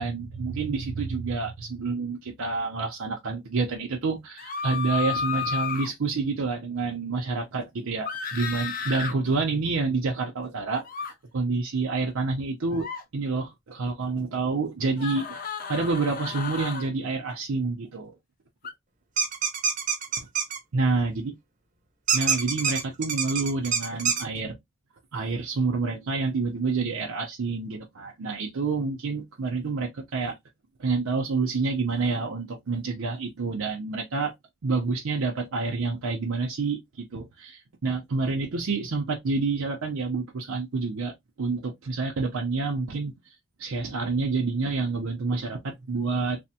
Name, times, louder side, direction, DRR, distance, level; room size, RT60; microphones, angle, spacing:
voice 1, 0.0-10.8 11.3-12.9 13.1-15.3 15.5-18.1 20.2-20.3 20.7-21.3 22.1-24.5 25.1-30.3 30.8-34.3 34.6-43.1 43.6-46.4, right 4 dB, 80° right, 0.6 m, -28 dB
sound 1, 4.4-5.9 8.1-9.1 10.8-11.1 12.7-13.0 15.0-16.9 18.6-18.7, left 6 dB, 40° left, 0.5 m, -32 dB
sound 2, 19.2-20.6 22.1-24.2, right 6 dB, 40° right, 0.6 m, -26 dB
3.3 x 2.1 x 2.7 m
head